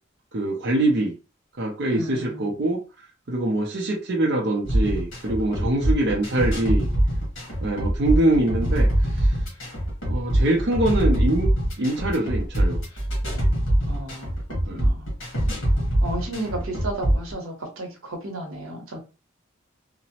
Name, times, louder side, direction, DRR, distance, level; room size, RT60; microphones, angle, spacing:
voice 1, 0.3-1.1 1.6-2.8 3.3-6.9 7.6-8.9 9.2-9.3 10.0-11.5 11.8-12.8 14.7-14.8, right 1 dB, 55° right, 0 dB, 0.5 m, -23 dB
voice 2, 1.9-2.5 13.9-14.3 14.7-15.1 16.0-19.0, right 1 dB, 85° right, 3 dB, 0.8 m, -33 dB
sound 1, 4.6-17.3, right 1 dB, 70° left, 1.3 m, -23 dB
2.9 x 2.0 x 2.8 m, 0.32 s
head